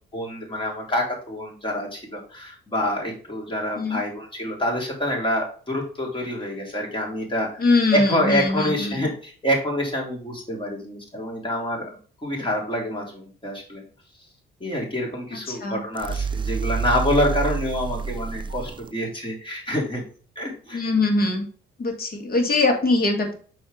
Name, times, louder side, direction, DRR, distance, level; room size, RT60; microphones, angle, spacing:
voice 1, 0.1-12.0 12.2-13.8 14.6-20.0 20.3-20.8, equal, 25° left, -1 dB, 3.5 m, -27 dB
voice 2, 7.6-9.0 15.5-15.8 20.7-21.5 21.8-23.3, left 3 dB, 50° left, 3 dB, 2.2 m, -22 dB
sound 1, 15.9-18.9, right 6 dB, 25° right, 0.4 m, -28 dB
6.3 x 4.5 x 5.0 m, 0.42 s
cardioid pair, 90°, 20 cm